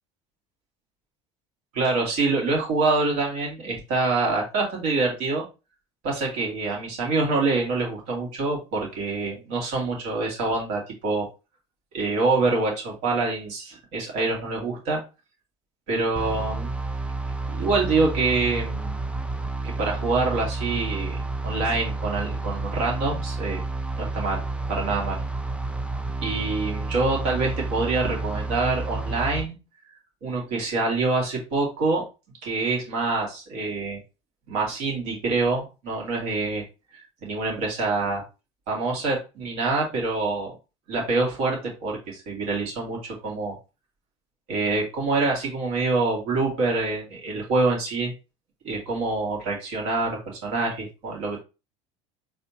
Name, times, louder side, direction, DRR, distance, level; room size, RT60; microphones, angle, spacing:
voice 1, 1.7-5.4 6.0-11.3 11.9-15.0 15.9-16.7 17.5-19.0 19.6-23.6 24.0-24.4 24.7-25.2 26.2-29.5 30.2-32.1 32.4-34.0 34.5-36.6 37.2-38.2 38.7-40.5 40.9-43.6 44.5-48.1 48.6-51.4, right 3 dB, 65° right, -1 dB, 2.2 m, -26 dB
sound 1, 16.2-29.5, right 3 dB, 5° right, 0.8 m, -30 dB
4.4 x 3.3 x 2.9 m, 0.29 s
hypercardioid pair, 75°, 16 cm